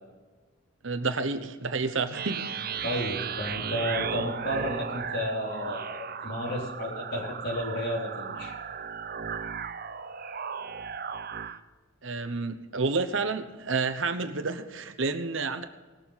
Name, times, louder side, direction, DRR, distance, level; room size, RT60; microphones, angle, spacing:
voice 1, 0.8-2.5 12.0-15.6, right 4 dB, 65° right, 10 dB, 1.0 m, -30 dB
sound 1, 2.1-11.6, right 7 dB, 45° right, 0.6 m, -36 dB
voice 2, 2.8-8.5, equal, 50° left, -2 dB, 3.7 m, -32 dB
19.0 x 7.1 x 5.7 m, 1.3 s
head